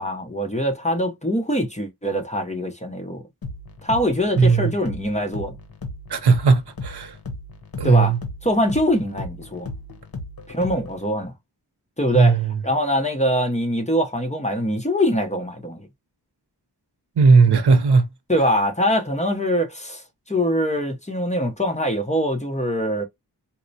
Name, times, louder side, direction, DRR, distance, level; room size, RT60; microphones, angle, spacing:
voice 1, 0.0-3.2 3.8-5.6 7.8-8.1 8.4-9.7 10.5-11.3 12.0-15.8 18.3-23.0, equal, 15° left, 0.8 m, -23 dB
sound 1, 3.4-11.1, left 2 dB, 65° left, 0.9 m, -36 dB
voice 2, 4.4-4.7 6.1-7.1 7.8-8.2 12.1-12.5 17.2-18.1, right 4 dB, 75° right, 0.7 m, -16 dB
4.2 x 2.1 x 2.6 m
wide cardioid pair, 60°, 39 cm